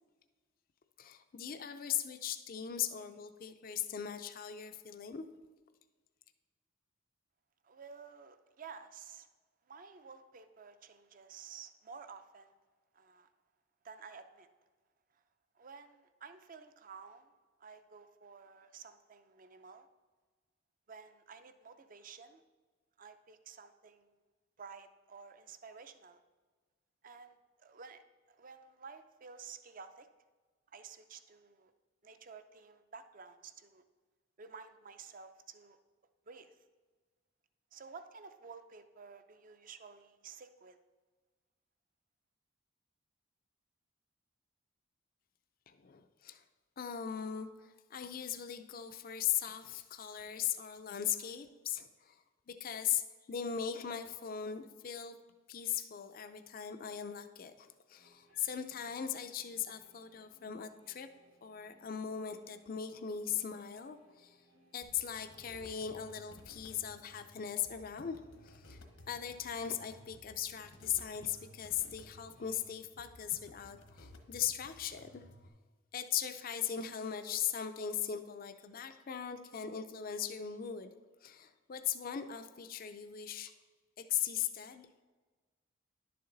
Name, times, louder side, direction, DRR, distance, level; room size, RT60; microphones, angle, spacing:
voice 1, 1.0-5.2 45.7-46.4 46.8-55.2 55.5-61.1 61.4-64.4 64.7-68.2 68.4-68.8 69.1-75.2 75.9-80.9 81.2-83.5 84.0-85.0, left 9 dB, 45° left, 8 dB, 0.4 m, -39 dB
voice 2, 7.6-9.3 9.7-12.5 12.9-13.3 13.8-14.5 15.1-15.2 15.6-17.3 17.6-19.9 20.9-22.4 23.0-24.1 24.6-26.2 27.0-30.1 30.7-31.7 32.0-33.8 34.4-35.8 36.3-36.6 37.7-40.8, right 5 dB, 45° right, 10 dB, 0.5 m, -52 dB
sound 1, 57.9-72.6, right 1 dB, 85° right, 2.4 m, -69 dB
sound 2, 64.8-75.5, left 1 dB, 80° left, 1.1 m, -57 dB
11.0 x 6.8 x 3.9 m, 1.4 s
head